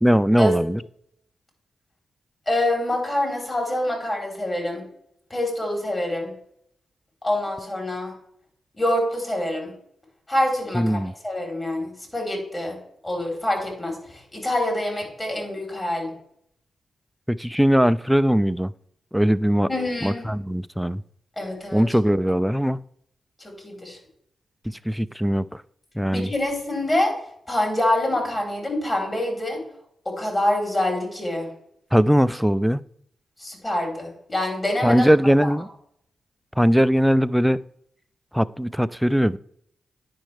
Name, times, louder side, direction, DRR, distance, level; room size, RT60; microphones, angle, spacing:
voice 1, 0.0-0.8 10.7-11.1 17.3-18.7 19.1-19.7 20.0-21.0 21.7-22.8 24.7-25.6 26.0-26.3 31.9-32.8 34.8-35.7 36.6-37.6 38.3-39.4, equal, ahead, 16 dB, 0.3 m, -20 dB
voice 2, 2.5-4.8 5.3-6.3 7.2-8.1 8.7-9.7 10.3-12.8 13.0-16.1 19.7-20.3 21.4-21.8 23.4-24.0 26.1-27.1 27.5-29.6 30.1-31.5 33.4-35.1 35.4-35.5, left 1 dB, 30° left, 0 dB, 3.5 m, -26 dB
10.0 x 5.3 x 3.3 m, 0.70 s
supercardioid pair, 40°, 0 cm